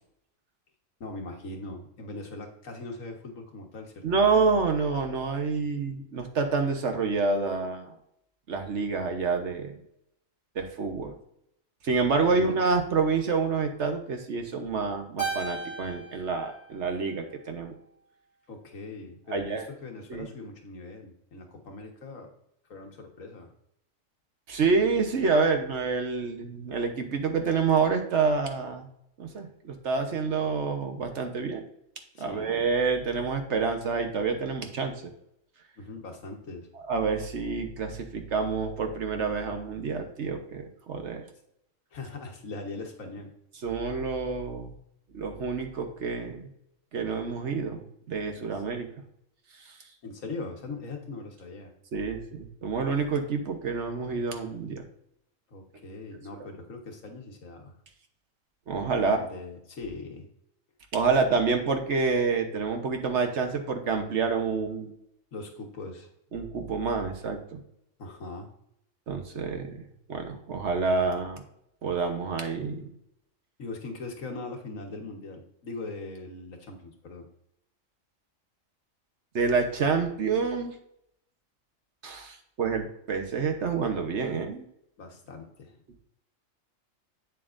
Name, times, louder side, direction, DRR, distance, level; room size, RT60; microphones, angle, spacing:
voice 1, 1.0-4.2 12.3-12.6 16.1-16.2 18.5-22.3 22.7-23.5 32.1-32.6 33.1-33.3 35.8-36.7 41.9-43.4 48.5-48.6 50.0-51.7 55.5-57.7 59.0-60.3 65.3-66.1 68.0-68.5 73.6-77.3 85.0-86.0, left 3 dB, 75° left, 3 dB, 1.6 m, -40 dB
voice 2, 4.0-7.9 8.5-9.7 10.5-11.1 11.8-17.7 19.3-19.7 20.1-20.3 24.5-28.9 29.2-31.7 32.2-34.9 36.9-41.2 43.6-44.7 45.1-46.5 46.9-48.9 51.9-54.8 58.7-59.2 60.9-64.9 66.3-67.6 69.1-69.8 70.1-71.4 71.8-72.9 79.3-80.7 82.0-84.6, right 4 dB, 60° right, 5 dB, 1.2 m, -28 dB
Keyboard (musical), 15.2-17.7, right 4 dB, 15° left, 2.9 m, -37 dB
8.3 x 7.5 x 2.5 m, 0.74 s
omnidirectional pair, 1.4 m